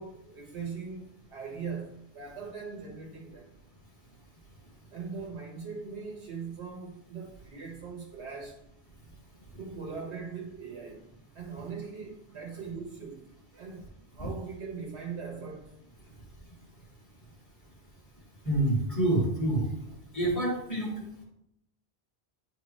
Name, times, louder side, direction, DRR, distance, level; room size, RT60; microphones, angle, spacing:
voice 1, 0.0-3.5 4.9-8.6 9.6-11.1 11.3-13.2 13.5-15.7, right 5 dB, 85° right, 1.3 m, -40 dB
voice 2, 18.4-19.6 20.1-20.9, right 1 dB, 15° left, 2.0 m, -27 dB
10.0 x 3.6 x 3.2 m
omnidirectional pair, 1.1 m